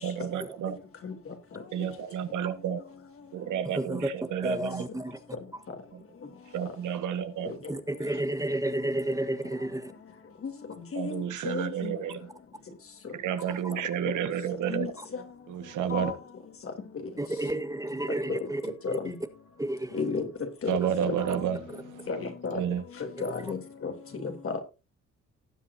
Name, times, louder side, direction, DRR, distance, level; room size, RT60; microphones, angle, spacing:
voice 1, 0.0-0.8 1.7-2.8 3.3-4.8 5.9-6.0 6.5-7.5 10.9-12.2 13.1-14.9 15.5-16.1 20.7-22.1 22.5-22.8, right 8 dB, 80° right, 1.6 m, -31 dB
voice 2, 0.6-3.6 5.7-6.8 7.4-7.7 10.0-11.9 12.2-13.2 13.7-13.8 14.7-16.2 16.6-17.2 18.3-19.2 19.9-24.6, left 5 dB, 45° left, 3.2 m, -37 dB
voice 3, 3.6-4.1 4.4-5.2 5.5-5.6 7.7-9.9 13.5-13.7 15.0-15.1 17.2-19.2 19.6-20.1 20.8-21.4 21.7-21.8 23.2-23.5, right 1 dB, 10° right, 1.4 m, -32 dB
18.5 x 7.8 x 2.7 m
cardioid pair, 90°, 30 cm